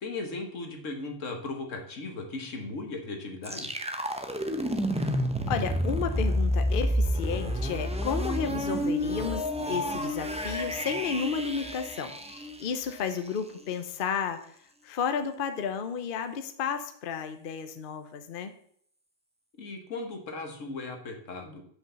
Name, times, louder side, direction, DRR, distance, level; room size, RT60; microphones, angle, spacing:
voice 1, 0.0-3.7 19.6-21.6, left 3 dB, 85° left, 4 dB, 1.7 m, -37 dB
sound 1, 3.4-13.3, equal, 10° right, 0.4 m, -30 dB
voice 2, 5.5-14.4 14.8-18.5, left 6 dB, 50° left, 8 dB, 0.8 m, -32 dB
6.0 x 5.2 x 6.8 m, 0.63 s
omnidirectional pair, 1.3 m